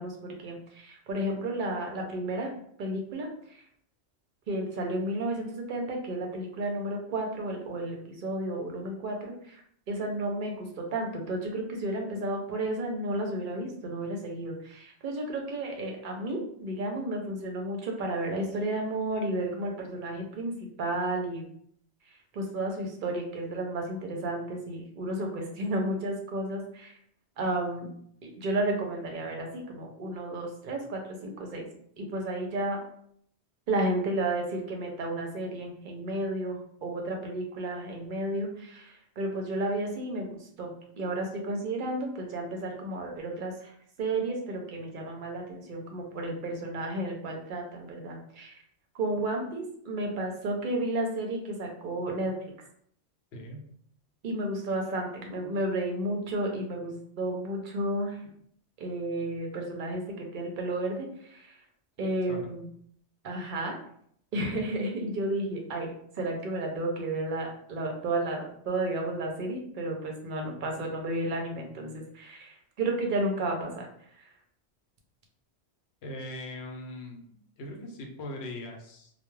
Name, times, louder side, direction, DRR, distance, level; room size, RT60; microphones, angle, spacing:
voice 1, 0.0-2.5 2.8-3.6 4.5-9.6 9.9-20.5 20.8-21.5 22.3-26.9 27.4-27.9 28.2-31.7 32.0-32.8 33.7-40.7 41.0-43.7 44.0-48.5 48.9-52.3 54.2-58.2 58.8-61.6 62.0-62.6 63.2-63.7 64.3-73.9 74.2-74.3, right 1 dB, 55° right, 1 dB, 0.6 m, -32 dB
voice 2, 53.3-53.6 62.3-62.5 76.0-79.1, left 1 dB, 70° left, 1 dB, 0.8 m, -40 dB
2.2 x 2.1 x 3.1 m, 0.66 s
omnidirectional pair, 1.2 m